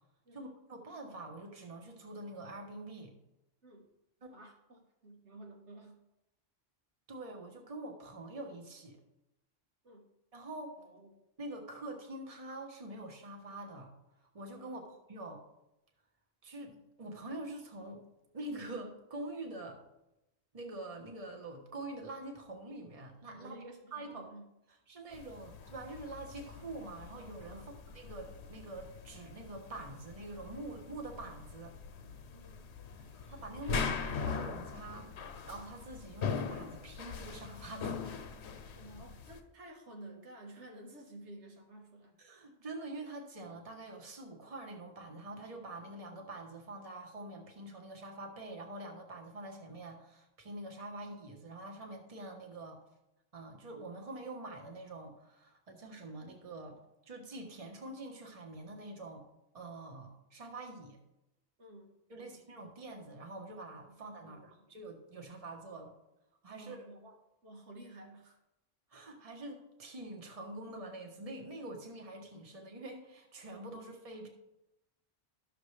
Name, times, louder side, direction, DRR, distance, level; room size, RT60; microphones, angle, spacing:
voice 1, 0.3-3.1 4.2-4.4 7.1-9.0 10.3-10.8 11.4-13.9 14.3-15.4 16.4-18.1 18.3-19.8 20.5-23.6 23.9-24.3 24.9-31.7 33.3-38.1 42.2-52.8 53.3-56.8 57.0-59.2 59.5-61.0 62.1-65.9 66.4-66.9 68.9-74.3, right 2 dB, 35° right, 2 dB, 1.2 m, -45 dB
voice 2, 4.3-6.0 9.8-10.1 10.8-11.2 14.6-14.8 23.3-24.4 27.5-27.7 32.3-32.6 38.7-42.2 61.6-62.4 63.8-64.0 64.2-64.7 66.5-68.4 73.7-73.8, right 1 dB, 90° right, 1 dB, 1.6 m, -53 dB
sound 1, 25.1-39.4, left 5 dB, 75° left, 1.0 m, -41 dB
12.0 x 6.7 x 3.3 m, 0.90 s
omnidirectional pair, 1.1 m